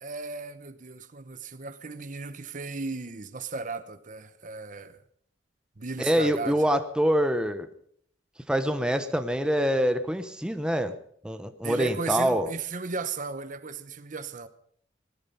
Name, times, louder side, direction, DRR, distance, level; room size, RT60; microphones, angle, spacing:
voice 1, 0.0-5.0 5.8-6.6 11.6-14.5, right 4 dB, 45° right, 0.9 m, -35 dB
voice 2, 6.0-7.7 8.5-10.9 11.2-12.5, equal, 5° right, 0.9 m, -25 dB
19.0 x 13.0 x 5.5 m
head